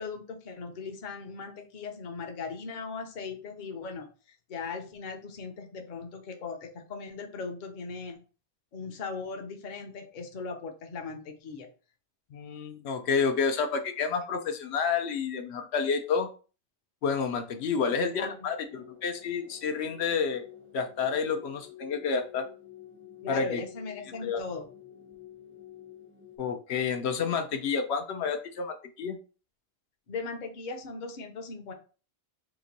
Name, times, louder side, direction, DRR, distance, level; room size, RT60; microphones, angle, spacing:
voice 1, 0.0-4.1 4.5-8.2 8.7-11.7 17.8-18.5 23.2-24.7 30.1-31.7, left 4 dB, 50° left, 5 dB, 0.7 m, -38 dB
voice 2, 12.3-16.3 17.0-20.5 20.7-22.5 23.3-23.6 24.2-24.4 26.4-29.2, left 5 dB, 80° left, 6 dB, 0.8 m, -29 dB
sound 1, 18.2-26.4, left 10 dB, 15° right, 0.5 m, -50 dB
3.0 x 2.5 x 3.8 m, 0.36 s
omnidirectional pair, 1.1 m